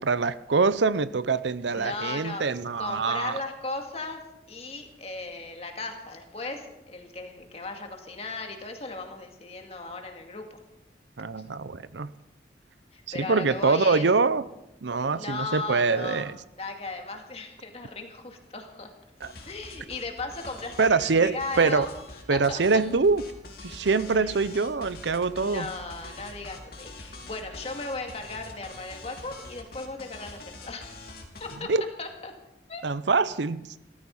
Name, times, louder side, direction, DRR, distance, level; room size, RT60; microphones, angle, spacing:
voice 1, 0.0-3.4 11.2-12.1 13.1-14.4 14.8-16.4 19.2-19.3 20.8-21.9 22.3-23.2 23.6-25.7 31.7-31.8 32.8-33.6, right 4 dB, 75° right, 0.7 m, -24 dB
voice 2, 1.7-2.4 2.8-4.2 4.5-10.6 12.9-14.1 15.2-16.3 16.6-18.9 19.5-21.9 22.3-22.6 24.1-24.4 25.4-30.9 31.4-31.7 32.0-32.3 32.7-32.8, left 3 dB, 35° left, 2.2 m, -37 dB
sound 1, 19.2-31.6, left 2 dB, 55° left, 3.3 m, -45 dB
17.0 x 14.0 x 5.5 m
head